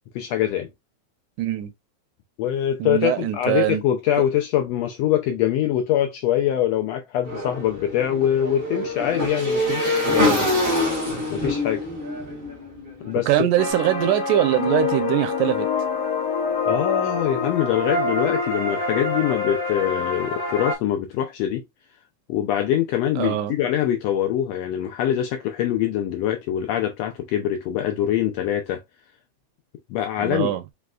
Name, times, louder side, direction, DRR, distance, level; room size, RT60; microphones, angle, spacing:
voice 1, 0.1-0.7 2.4-10.5 11.3-11.8 13.0-13.3 16.6-21.6 22.3-28.8 29.9-30.6, left 11 dB, 80° left, 1.5 m, -23 dB
voice 2, 1.4-1.7 2.8-3.8 13.3-15.7 23.2-23.5 30.2-30.6, right 14 dB, 90° right, 2.1 m, -22 dB
Motorcycle / Engine, 7.2-13.4, left 1 dB, 20° right, 1.5 m, -25 dB
sound 1, 13.6-20.7, left 4 dB, 60° left, 0.9 m, -26 dB
5.0 x 3.2 x 2.3 m
omnidirectional pair, 3.5 m